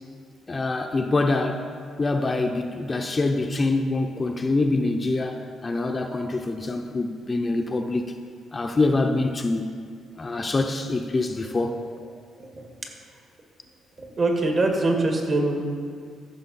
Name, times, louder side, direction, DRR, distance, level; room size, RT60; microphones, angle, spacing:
voice 1, 0.5-1.7 2.0-8.1 8.5-9.7 10.2-11.8, left 2 dB, 30° left, 4 dB, 0.7 m, -25 dB
voice 2, 14.0-15.6, right 2 dB, 40° right, 2 dB, 1.7 m, -23 dB
14.5 x 6.0 x 4.2 m, 2.1 s
cardioid pair, 90°, 0 cm